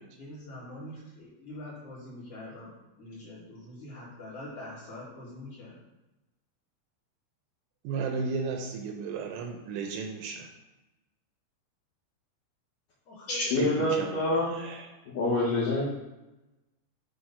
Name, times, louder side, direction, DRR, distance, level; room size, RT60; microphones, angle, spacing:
voice 1, 0.1-5.8 13.1-13.4, left 1 dB, 50° left, -9 dB, 2.8 m, -44 dB
voice 2, 7.8-10.5 13.6-14.9, right 4 dB, 80° right, 3 dB, 2.8 m, -34 dB
voice 3, 13.3-14.6 15.1-15.9, left 1 dB, 80° left, -7 dB, 1.9 m, -26 dB
10.0 x 3.6 x 5.4 m, 1.0 s
omnidirectional pair, 5.9 m